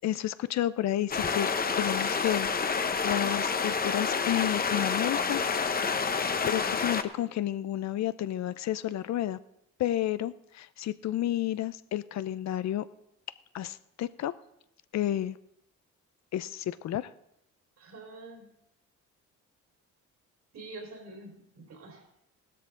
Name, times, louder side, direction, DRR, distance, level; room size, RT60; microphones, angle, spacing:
voice 1, 0.0-1.5 1.8-5.9 6.5-9.4 9.8-12.8 13.5-14.3 14.9-15.4 16.3-17.1, left 12 dB, 60° left, 15 dB, 0.5 m, -31 dB
sound 1, 1.1-7.0, left 5 dB, 30° left, 0.8 m, -28 dB
voice 2, 17.8-18.5 20.5-22.1, right 2 dB, 60° right, 1 dB, 3.9 m, -46 dB
16.0 x 13.0 x 3.8 m, 0.80 s
cardioid pair, 90°, 30 cm